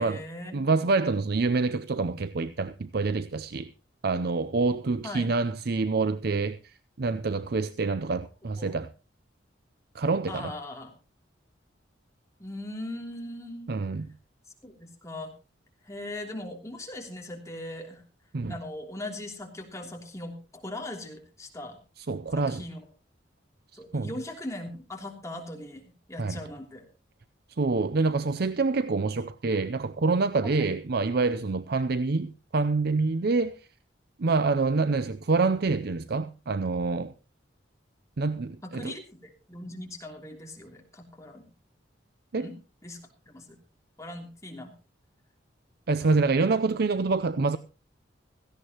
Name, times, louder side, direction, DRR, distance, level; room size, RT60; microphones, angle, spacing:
voice 1, 0.0-0.7 5.0-5.3 8.6-8.8 10.3-10.9 12.4-13.7 14.6-15.3 15.8-18.0 18.5-21.8 22.3-22.8 23.7-25.8 26.1-26.8 30.4-30.7 31.8-31.9 38.6-41.4 42.3-42.5 42.8-43.0 43.3-43.5 44.0-44.7 46.0-46.1, left 1 dB, 15° left, 3.1 m, -39 dB
voice 2, 0.5-3.7 4.0-8.9 9.9-10.5 13.7-14.1 18.3-18.6 22.0-22.6 23.9-24.1 26.2-26.4 27.6-33.7 34.2-37.1 38.2-38.9 42.3-42.5 45.9-47.6, right 3 dB, 60° right, 0.6 m, -26 dB
17.0 x 15.0 x 3.0 m
head